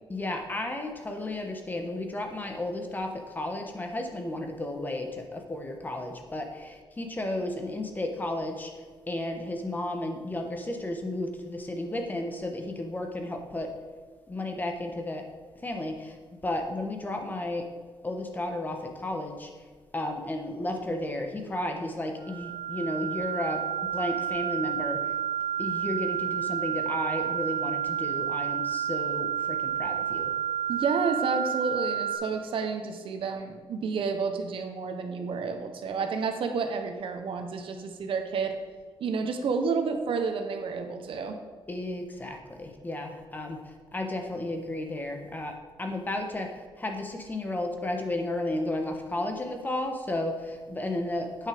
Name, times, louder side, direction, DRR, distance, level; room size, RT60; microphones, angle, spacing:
voice 1, 0.1-3.1 3.3-8.7 9.1-13.7 14.3-15.2 15.6-16.2 16.4-17.7 18.0-19.5 19.9-23.6 23.9-25.0 25.6-30.3 41.7-43.6 43.9-45.5 45.8-46.5 46.8-51.5, left 1 dB, 20° left, 3 dB, 1.1 m, -33 dB
sound 1, 22.2-32.2, right 9 dB, 25° right, 1.6 m, -30 dB
voice 2, 30.7-38.5 39.0-41.4, right 5 dB, 70° right, 5 dB, 1.0 m, -30 dB
8.8 x 6.5 x 5.1 m, 1.5 s
wide cardioid pair, 150°, 9 cm